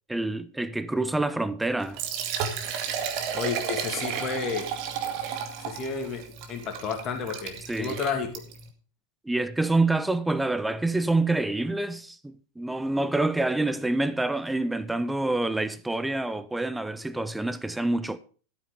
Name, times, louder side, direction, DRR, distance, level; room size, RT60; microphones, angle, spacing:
voice 1, 0.1-2.0 7.7-8.0 9.2-18.2, right 2 dB, 5° right, 0.6 m, -27 dB
Liquid, 1.8-8.7, right 7 dB, 45° right, 2.0 m, -33 dB
voice 2, 3.3-4.7 5.7-6.2 6.5-8.3, left 5 dB, 30° left, 2.5 m, -31 dB
13.5 x 8.5 x 5.1 m
figure-of-eight pair, 90°, 0 cm